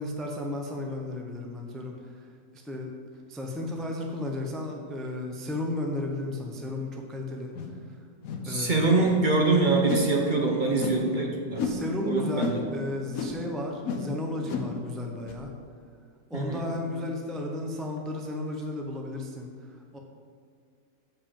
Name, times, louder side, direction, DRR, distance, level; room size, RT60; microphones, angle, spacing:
voice 1, 0.0-2.3 2.6-2.9 3.3-7.5 8.4-8.9 11.6-15.5 16.3-19.5 19.9-20.0, left 1 dB, ahead, 0 dB, 0.5 m, -33 dB
sound 1, 7.5-7.8 8.2-8.5 9.0-9.3 9.8-10.1 10.8-11.0 11.5-11.8 12.4-12.6 13.1-13.4 13.8-14.1 14.4-14.8 15.3-15.4, left 6 dB, 70° left, 1.3 m, -32 dB
voice 2, 8.4-11.7 12.1-12.5 16.3-16.7, right 3 dB, 40° right, 0 dB, 0.9 m, -24 dB
7.4 x 5.5 x 7.1 m, 2.2 s
omnidirectional pair, 1.6 m